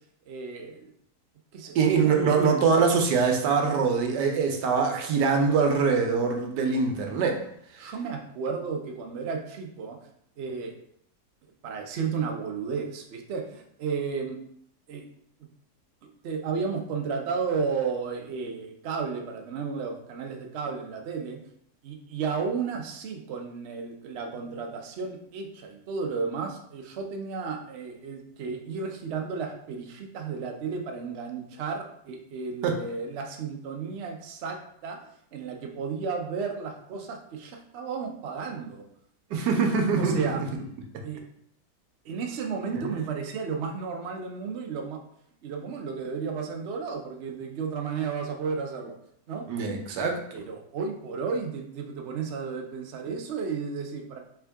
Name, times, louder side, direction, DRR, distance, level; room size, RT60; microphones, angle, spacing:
voice 1, 0.3-0.9 1.5-2.1 7.8-10.0 10.4-10.7 11.6-14.4 14.9-15.0 16.2-21.4 21.8-35.0 35.3-38.8 40.0-40.4 41.0-41.2 42.0-45.0 45.4-48.9 49.3-49.5 50.3-54.2, right 5 dB, 60° right, 2 dB, 0.7 m, -33 dB
voice 2, 1.7-7.4 7.8-7.9 32.6-32.8 39.3-40.3 42.7-42.8 49.5-50.4, right 5 dB, 85° right, 4 dB, 1.3 m, -23 dB
3.7 x 3.5 x 3.4 m, 0.70 s
omnidirectional pair, 1.8 m